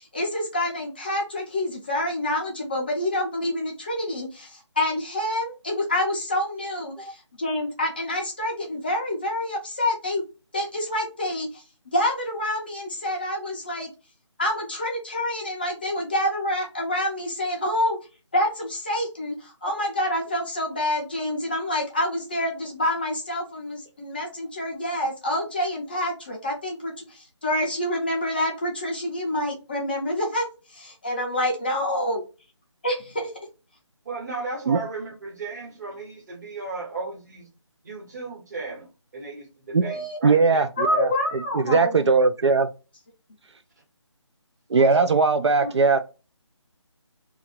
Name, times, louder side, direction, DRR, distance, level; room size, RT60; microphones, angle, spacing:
voice 1, 0.0-10.2 10.5-11.6 11.9-13.9 14.4-18.0 18.3-32.2 32.8-33.3 39.8-40.2 40.8-42.1 44.8-44.9 45.6-45.7, left 1 dB, 20° left, 0.5 m, -27 dB
voice 2, 34.0-37.5 37.8-38.9 39.1-40.7, right 3 dB, 35° right, 1.3 m, -35 dB
voice 3, 40.2-41.1 41.5-42.7 44.7-46.0, right 4 dB, 65° right, 0.4 m, -19 dB
2.9 x 2.5 x 4.2 m
figure-of-eight pair, 165°, 16 cm